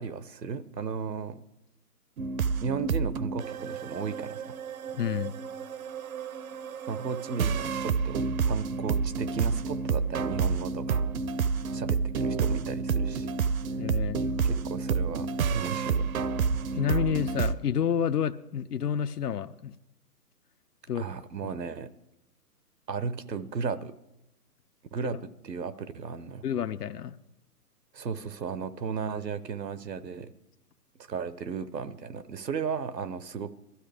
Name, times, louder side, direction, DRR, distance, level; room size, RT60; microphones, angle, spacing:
voice 1, 0.0-1.4 2.6-4.6 6.9-11.0 11.7-13.3 14.4-16.1 20.9-21.9 22.9-23.9 24.9-26.4 27.9-30.3 31.1-33.6, right 6 dB, 90° right, 14 dB, 1.0 m, -35 dB
sound 1, 2.2-17.5, right 5 dB, 60° right, 0.6 m, -29 dB
voice 2, 4.9-5.3 13.8-14.2 16.7-19.7 20.9-21.1 26.4-27.2, left 8 dB, 70° left, 10 dB, 0.7 m, -29 dB
17.0 x 13.0 x 3.4 m, 0.89 s
hypercardioid pair, 150°, 48 cm